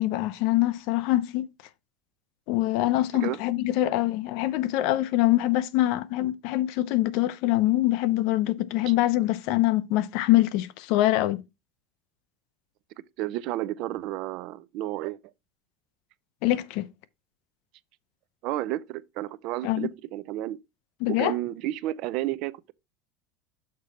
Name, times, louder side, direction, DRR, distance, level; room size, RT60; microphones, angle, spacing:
voice 1, 0.0-1.5 2.5-11.4 16.4-16.9 19.6-19.9 21.0-21.3, left 15 dB, 60° left, 0.6 m, -24 dB
voice 2, 13.2-15.2 18.4-20.6 21.1-22.7, right 15 dB, 50° right, 0.4 m, -31 dB
6.7 x 5.0 x 4.2 m
cardioid pair, 160°, 0 cm